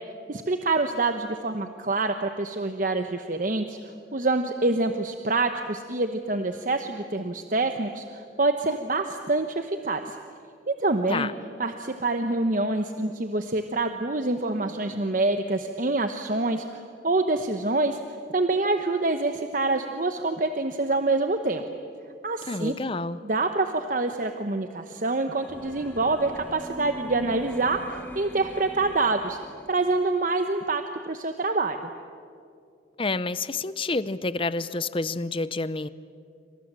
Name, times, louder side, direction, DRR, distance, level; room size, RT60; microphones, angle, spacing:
voice 1, 0.3-3.8 4.1-10.2 10.7-11.3 11.6-18.0 18.3-21.6 22.2-22.7 23.2-29.4 29.7-31.8, right 2 dB, 45° right, 7 dB, 1.0 m, -26 dB
voice 2, 22.5-23.2 33.0-35.9, left 3 dB, 30° left, 15 dB, 0.7 m, -28 dB
sound 1, 25.4-30.0, equal, 10° left, 1.3 m, -42 dB
28.0 x 26.0 x 7.5 m, 2.4 s
head